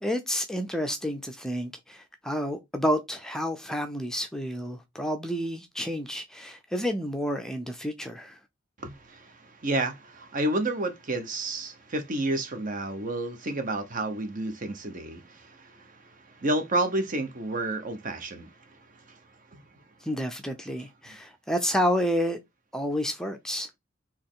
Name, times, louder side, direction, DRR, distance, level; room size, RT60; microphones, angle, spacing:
voice 1, 0.0-8.4 20.0-22.4 22.7-23.7, equal, 5° left, 0.5 m, -30 dB
voice 2, 8.8-19.2 19.5-19.6, right 2 dB, 45° right, 0.9 m, -31 dB
4.4 x 3.0 x 3.7 m
head